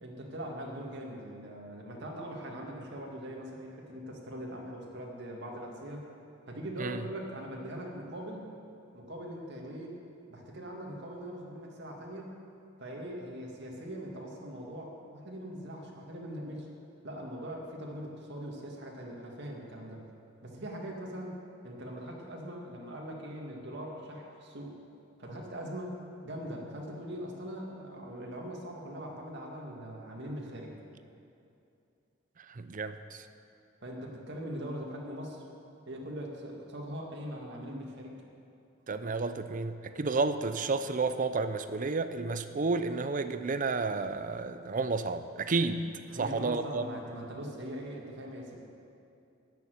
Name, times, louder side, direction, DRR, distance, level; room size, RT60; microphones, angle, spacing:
voice 1, 0.0-6.1 6.5-8.5 8.9-10.0 10.3-12.4 12.8-16.7 17.0-20.0 20.4-21.4 21.6-24.7 25.2-26.0 26.2-30.8 33.8-35.4 35.9-38.1 46.1-48.6, equal, 60° right, -1 dB, 2.1 m, -41 dB
voice 2, 32.5-33.2 38.9-45.8 46.1-46.8, right 3 dB, 45° right, 11 dB, 0.6 m, -31 dB
13.5 x 7.1 x 9.4 m, 2.7 s
head